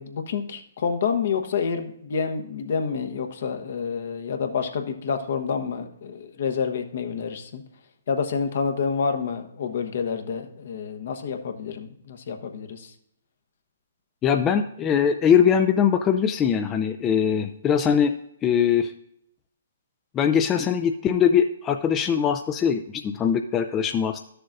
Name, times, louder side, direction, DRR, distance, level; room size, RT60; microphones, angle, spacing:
voice 1, 0.0-7.6 8.1-12.9, left 6 dB, 60° left, 6 dB, 1.1 m, -28 dB
voice 2, 14.2-18.1 18.4-18.9 20.1-24.2, left 8 dB, 20° left, 6 dB, 0.4 m, -21 dB
12.5 x 6.8 x 2.5 m, 0.73 s
figure-of-eight pair, 130°, 0 cm